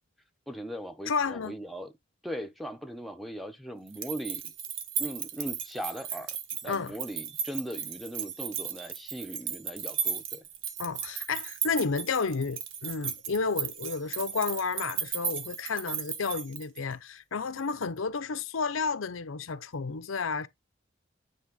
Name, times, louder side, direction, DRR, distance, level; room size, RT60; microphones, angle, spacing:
voice 1, 0.5-1.9 2.2-4.5 5.0-6.4 6.6-10.4, equal, ahead, 0.8 m, -39 dB
voice 2, 1.1-1.5 6.6-6.9 10.8-20.5, left 5 dB, 75° left, 0.7 m, -31 dB
sound 1, 3.9-16.9, right 8 dB, 65° right, 1.2 m, -35 dB
9.4 x 3.5 x 3.9 m
head